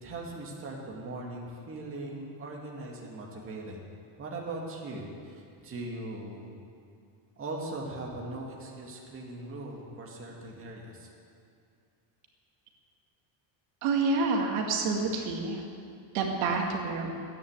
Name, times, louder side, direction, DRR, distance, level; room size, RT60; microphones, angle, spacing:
voice 1, 0.0-3.8 4.2-6.5 7.4-11.1, right 2 dB, 25° right, -1 dB, 2.2 m, -40 dB
voice 2, 13.8-15.6 16.1-17.1, right 4 dB, 80° right, 1 dB, 2.3 m, -28 dB
13.5 x 9.9 x 8.1 m, 2.4 s
cardioid pair, 150°, 47 cm